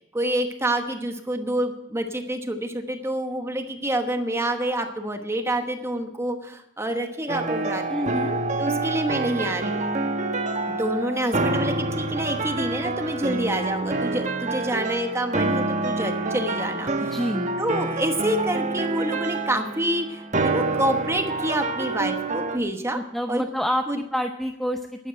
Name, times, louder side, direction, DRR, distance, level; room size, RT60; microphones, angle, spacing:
voice 1, 0.1-8.1 8.6-9.8 10.8-17.2 17.6-23.0 23.3-23.4 23.9-24.0, right 1 dB, 15° right, 5 dB, 1.1 m, -27 dB
sound 1, 7.3-22.6, right 3 dB, 40° right, 1.0 m, -27 dB
voice 2, 7.9-8.4 17.1-17.5 22.9-23.9 24.1-25.1, equal, ahead, 5 dB, 0.6 m, -27 dB
11.5 x 9.1 x 8.9 m, 0.88 s
head